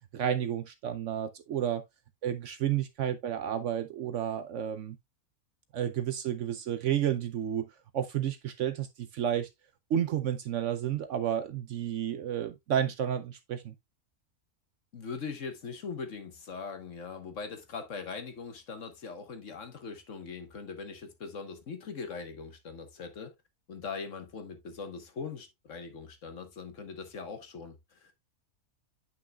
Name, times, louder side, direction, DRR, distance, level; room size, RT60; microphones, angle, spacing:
voice 1, 0.1-1.8 2.2-5.0 5.7-7.7 7.9-9.5 9.9-13.7, right 10 dB, 65° right, 0.8 m, -31 dB
voice 2, 14.9-23.3 23.7-28.1, left 5 dB, 60° left, 1.5 m, -41 dB
9.4 x 5.6 x 2.3 m
omnidirectional pair, 1.6 m